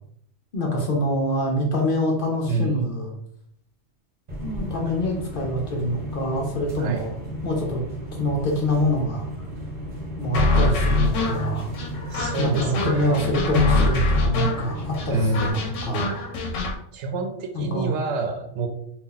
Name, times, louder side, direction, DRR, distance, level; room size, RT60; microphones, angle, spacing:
voice 1, 0.5-3.2 4.4-7.1 7.4-7.8 8.1-9.3 10.2-11.7 12.4-16.2 17.5-18.0, equal, 55° left, 0 dB, 0.8 m, -25 dB
voice 2, 2.5-3.0 6.8-7.1 12.0-13.3 15.1-15.7 16.9-18.7, right 2 dB, 75° right, 5 dB, 0.9 m, -28 dB
sound 1, 4.3-15.5, equal, 45° right, 0.9 m, -34 dB
sound 2, 10.3-16.8, left 3 dB, 80° left, 0.9 m, -24 dB
2.7 x 2.3 x 3.8 m, 0.69 s
omnidirectional pair, 1.2 m